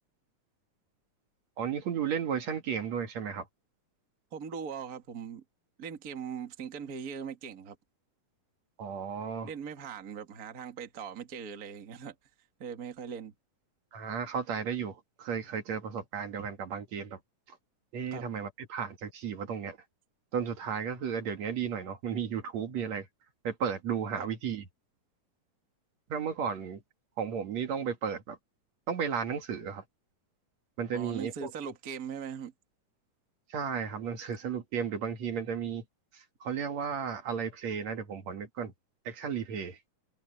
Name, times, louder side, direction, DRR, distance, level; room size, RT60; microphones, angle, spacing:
voice 1, 1.6-3.5 8.8-9.5 13.9-17.2 17.5-17.6 17.9-19.8 20.3-23.1 23.4-24.6 26.1-26.8 27.2-28.4 28.9-29.8 30.8-31.5 33.5-35.8 36.1-38.7 39.1-39.8, right 7 dB, 60° right, 2.9 m, -34 dB
voice 2, 4.3-5.4 5.8-7.8 9.4-12.1 12.6-13.3 18.1-18.3 24.2-24.3 30.9-32.5, right 7 dB, 35° right, 1.9 m, -40 dB
omnidirectional pair, 3.7 m